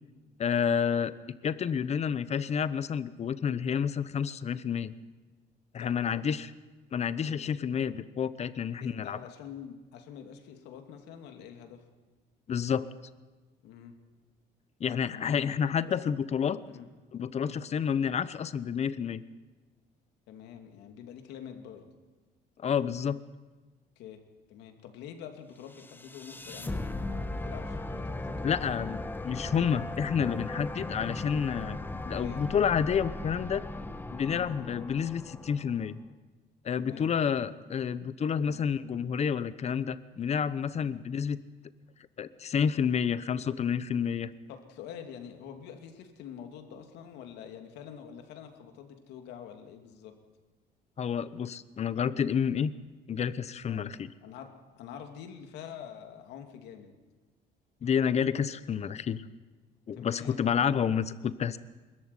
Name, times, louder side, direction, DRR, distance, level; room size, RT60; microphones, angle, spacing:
voice 1, 0.4-4.9 5.7-6.5 6.9-9.2 12.5-12.9 14.8-16.6 17.1-19.2 22.6-23.2 28.4-31.8 32.1-33.7 34.1-36.0 36.6-41.4 42.2-44.3 51.0-52.7 53.1-54.1 57.8-59.2 59.9-61.6, left 7 dB, 40° left, 15 dB, 1.0 m, -29 dB
voice 2, 5.8-6.2 8.6-11.8 13.6-13.9 15.1-15.5 15.8-15.9 16.7-16.9 17.4-17.6 20.3-21.9 24.0-24.2 24.5-28.5 32.1-32.4 34.3-34.6 36.8-37.5 38.3-38.6 40.8-40.9 44.5-50.1 53.6-53.8 54.2-54.5 54.8-56.9 59.9-60.5, left 8 dB, 85° left, 5 dB, 2.7 m, -46 dB
sound 1, 25.7-35.9, left 2 dB, 10° left, 1.2 m, -37 dB
22.0 x 14.0 x 9.7 m, 1.3 s
cardioid pair, 110°, 17 cm